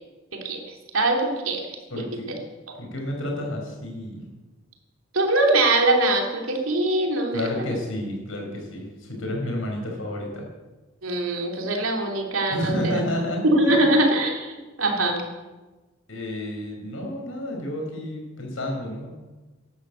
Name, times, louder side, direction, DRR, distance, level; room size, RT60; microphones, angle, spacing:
voice 1, 0.9-1.6 2.0-2.4 5.1-7.6 11.0-13.0 13.4-15.2, right 2 dB, 90° right, 1 dB, 3.1 m, -22 dB
voice 2, 1.9-2.3 2.8-4.3 7.3-10.5 12.5-14.0 16.1-19.1, left 1 dB, 75° left, 1 dB, 5.4 m, -30 dB
12.0 x 11.5 x 8.0 m, 1.2 s
head